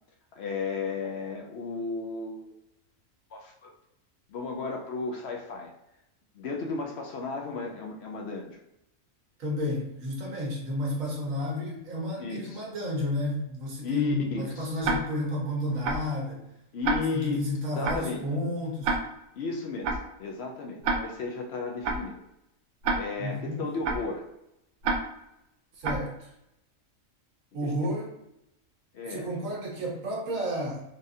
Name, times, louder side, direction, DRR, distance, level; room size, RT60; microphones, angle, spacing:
voice 1, 0.3-2.6 3.3-3.7 4.3-5.7 6.3-8.6 12.2-12.7 13.8-14.9 16.7-17.4 17.8-18.2 19.3-22.2 23.0-24.2 27.6-27.8 28.9-29.3, left 4 dB, 65° left, 1 dB, 0.7 m, -34 dB
voice 2, 9.4-16.4 17.1-18.9 23.2-23.6 25.8-26.3 27.5-28.1 29.1-30.8, left 1 dB, 85° right, -2 dB, 1.4 m, -31 dB
Tick-tock, 14.8-15.0 15.8-16.0 16.8-17.0 17.8-18.0 18.8-19.0 19.8-20.0 20.8-21.0 21.8-22.0 22.8-23.0 23.8-24.0 24.8-25.0 25.8-26.0, right 4 dB, 70° right, 0.8 m, -26 dB
4.0 x 2.4 x 2.6 m, 0.84 s
omnidirectional pair, 1.3 m